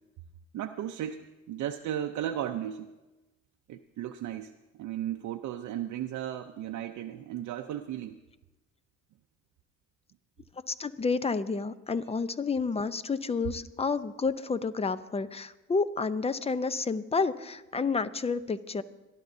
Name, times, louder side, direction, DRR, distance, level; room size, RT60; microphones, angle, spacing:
voice 1, 0.5-2.9 3.7-8.2 12.0-12.1, right 11 dB, 70° right, 5 dB, 0.6 m, -35 dB
voice 2, 10.7-18.8, left 4 dB, 20° left, 13 dB, 0.6 m, -30 dB
26.5 x 11.5 x 2.7 m, 1.1 s
cardioid pair, 90°, 30 cm